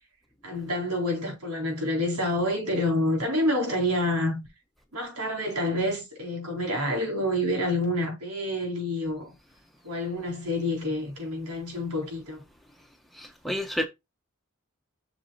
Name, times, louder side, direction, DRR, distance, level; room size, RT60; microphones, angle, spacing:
voice 1, 0.4-4.4 4.9-9.3 9.8-12.4, left 1 dB, 85° right, 4.0 m, -28 dB
voice 2, 13.1-13.8, left 1 dB, ahead, 1.2 m, -30 dB
6.2 x 4.7 x 4.2 m
head